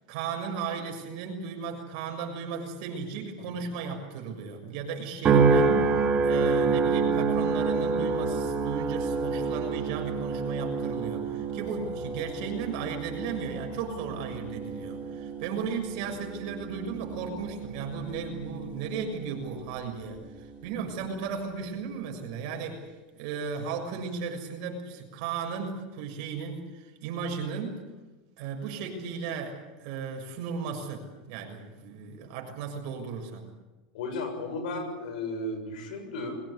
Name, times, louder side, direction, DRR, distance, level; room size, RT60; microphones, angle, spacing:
voice 1, 0.1-20.2 20.6-22.8 23.2-27.8 28.4-33.5, right 6 dB, 60° right, 3 dB, 6.7 m, -35 dB
sound 1, 5.2-19.7 20.3-20.7, right 4 dB, 30° right, 3.1 m, -28 dB
voice 2, 33.9-36.4, left 2 dB, 80° left, 7 dB, 6.7 m, -34 dB
23.0 x 18.0 x 9.7 m, 1.2 s
supercardioid pair, 135°, 4 cm